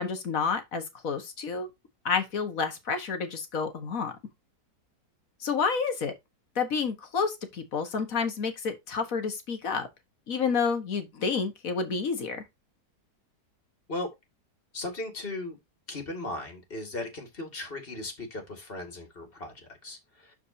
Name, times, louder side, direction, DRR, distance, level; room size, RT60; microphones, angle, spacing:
voice 1, 0.0-1.7 2.1-4.1 5.4-6.1 6.6-9.9 10.3-12.4, left 5 dB, 55° left, 1.8 m, -29 dB
voice 2, 14.7-15.6 15.9-20.3, left 2 dB, 35° left, 2.6 m, -37 dB
12.0 x 4.6 x 2.8 m
omnidirectional pair, 1.8 m